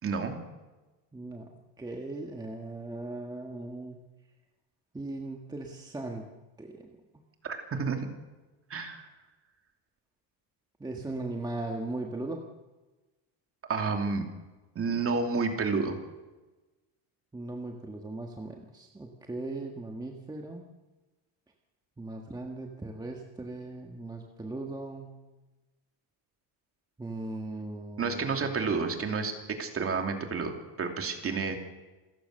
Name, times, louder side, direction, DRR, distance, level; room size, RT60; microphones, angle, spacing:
voice 1, 0.0-0.4 7.4-8.1 8.7-9.1 13.7-14.2 14.7-16.0 28.0-31.6, right 4 dB, 30° right, 4 dB, 2.9 m, -30 dB
voice 2, 1.1-4.0 4.9-6.3 6.6-7.0 10.8-12.4 17.3-20.7 22.0-25.3 27.0-28.5, right 2 dB, 10° right, 1 dB, 1.6 m, -38 dB
28.0 x 14.5 x 6.6 m, 1.1 s
cardioid pair, 160°, 45 cm